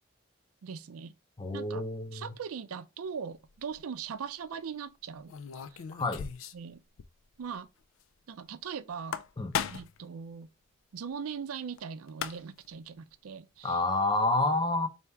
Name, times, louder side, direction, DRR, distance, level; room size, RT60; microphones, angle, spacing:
voice 1, 0.6-1.1 1.5-1.8 2.1-5.3 5.7-5.8 6.5-6.8 7.4-7.7 8.3-9.2 9.7-10.5 10.9-13.8, right 6 dB, 90° right, 0.4 m, -40 dB
voice 2, 1.4-2.3 5.9-6.3 9.4-9.5 13.6-14.9, left 2 dB, 20° left, 0.6 m, -28 dB
sound 1, 3.5-3.8 5.3-6.7 7.0-7.1 7.4-7.5 8.9-10.0 11.8-11.9 12.1-12.7, left 8 dB, 70° left, 0.4 m, -36 dB
4.4 x 2.8 x 3.4 m
head